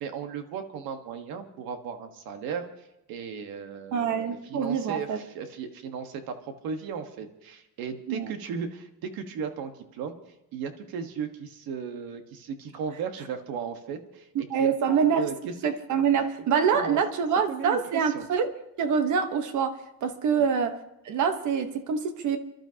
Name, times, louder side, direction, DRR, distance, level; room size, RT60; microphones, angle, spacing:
voice 1, 0.0-6.4 6.6-10.1 10.5-15.5 16.7-17.0 17.5-17.8 18.0-18.3 20.3-20.5, right 6 dB, 70° right, 6 dB, 1.5 m, -36 dB
voice 2, 3.9-5.2 8.1-8.3 14.3-15.3 15.6-20.8 21.0-22.4, right 6 dB, 50° right, 8 dB, 1.2 m, -25 dB
29.5 x 12.5 x 2.9 m, 0.89 s
cardioid pair, 175°, 37 cm